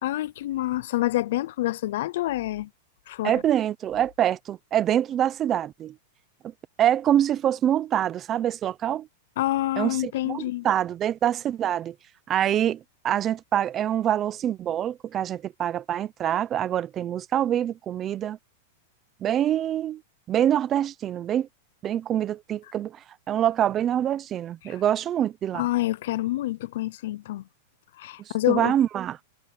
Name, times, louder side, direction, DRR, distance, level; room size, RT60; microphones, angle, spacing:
voice 1, 0.0-2.7 3.1-3.3 9.4-10.7 24.6-24.8 25.5-27.4 28.0-28.7, left 16 dB, 60° left, 0.5 m, -27 dB
voice 2, 3.2-6.0 6.8-9.1 9.8-11.9 12.3-18.4 19.2-20.0 20.3-21.5 21.8-25.7 28.5-29.2, right 10 dB, 20° right, 0.6 m, -25 dB
supercardioid pair, 165°, 0 cm